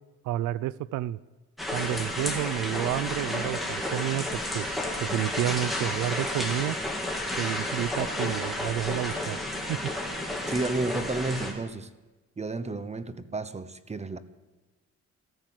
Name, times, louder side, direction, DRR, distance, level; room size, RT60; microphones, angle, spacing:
voice 1, 0.2-1.2 1.7-4.7 5.0-6.8 7.4-9.8, right 13 dB, 85° right, 20 dB, 0.5 m, -30 dB
sound 1, 1.6-11.5, left 1 dB, ahead, 3.1 m, -31 dB
voice 2, 10.5-11.9 12.4-14.2, right 2 dB, 20° right, 13 dB, 1.0 m, -31 dB
13.5 x 13.0 x 7.5 m, 1.2 s
cardioid pair, 90°, 30 cm